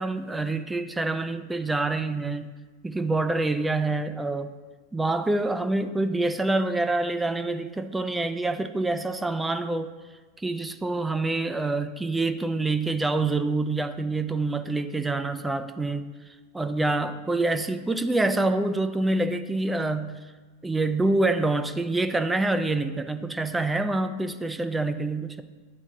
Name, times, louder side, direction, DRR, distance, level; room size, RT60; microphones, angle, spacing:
voice 1, 0.0-2.5 2.8-4.5 4.9-9.9 10.4-16.1 16.5-20.2 20.6-25.4, right 2 dB, 10° right, 9 dB, 0.3 m, -26 dB
9.2 x 4.1 x 3.7 m, 1.3 s
figure-of-eight pair, 90°, 0 cm